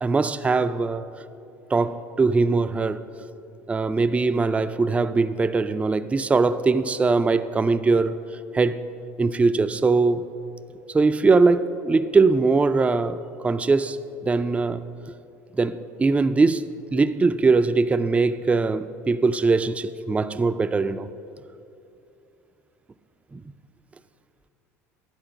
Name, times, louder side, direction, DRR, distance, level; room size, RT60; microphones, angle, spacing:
voice 1, 0.0-1.1 1.7-3.0 3.7-8.2 8.5-8.9 9.2-10.3 10.9-13.2 13.4-14.0 14.2-14.8 15.5-21.1 23.3-23.4, right 4 dB, 15° right, 0.4 m, -21 dB
11.0 x 4.4 x 7.1 m
hypercardioid pair, 70°, 8 cm